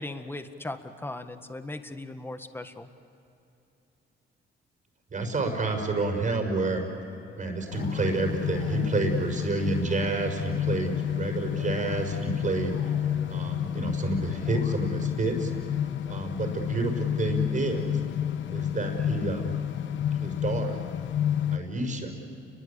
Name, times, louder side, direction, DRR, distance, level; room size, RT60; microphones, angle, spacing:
voice 1, 0.0-2.9, left 2 dB, 10° left, 8 dB, 1.7 m, -38 dB
voice 2, 5.1-6.9 7.4-12.9 13.3-15.8 16.1-18.0 18.5-19.6 20.2-20.8 21.5-22.2, right 3 dB, 40° right, 4 dB, 5.6 m, -29 dB
sound 1, 7.0-8.1 8.4-9.3 9.6-10.7 11.1-11.9 12.4-13.4 14.0-14.7, left 2 dB, 45° left, 7.1 m, -52 dB
sound 2, 7.7-21.6, left 10 dB, 70° left, 1.0 m, -30 dB
29.5 x 22.5 x 8.6 m, 2.9 s
cardioid pair, 90°, 20 cm